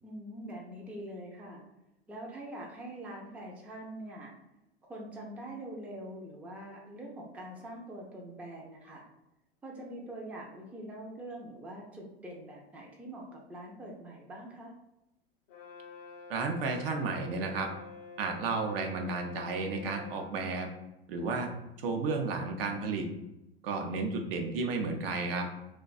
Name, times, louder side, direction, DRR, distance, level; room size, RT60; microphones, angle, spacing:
voice 1, 0.0-1.6 2.1-4.3 4.9-9.0 9.6-14.7, right 1 dB, 5° right, -2 dB, 0.4 m, -44 dB
Brass instrument, 15.5-20.4, left 4 dB, 45° left, 0.5 m, -48 dB
voice 2, 16.3-17.7 18.2-20.7 21.1-21.5 21.8-23.1 23.6-25.5, right 3 dB, 65° right, 3 dB, 0.6 m, -32 dB
2.5 x 2.2 x 2.3 m, 0.91 s
hypercardioid pair, 90°, 31 cm